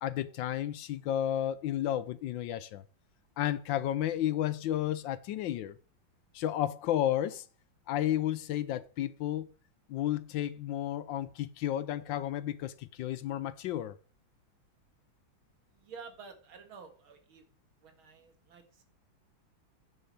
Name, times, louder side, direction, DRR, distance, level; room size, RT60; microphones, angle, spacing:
voice 1, 0.0-2.8 3.4-5.8 6.3-7.4 7.9-9.5 9.9-14.0, left 12 dB, 75° left, 1.2 m, -32 dB
voice 2, 15.7-17.4 17.8-18.8, right 5 dB, 80° right, 2.5 m, -50 dB
8.9 x 6.8 x 5.4 m
omnidirectional pair, 2.2 m